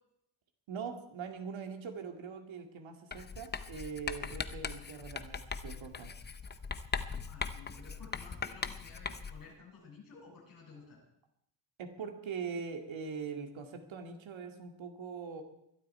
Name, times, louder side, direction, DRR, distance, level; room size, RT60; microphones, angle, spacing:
voice 1, 0.7-6.1 11.8-15.4, right 6 dB, 85° right, 5 dB, 2.4 m, -42 dB
Writing, 3.1-9.5, left 5 dB, 25° left, 0.6 m, -40 dB
voice 2, 7.2-11.0, left 4 dB, 45° left, -4 dB, 7.1 m, -53 dB
21.5 x 12.0 x 4.5 m, 0.79 s
wide cardioid pair, 170°, 45 cm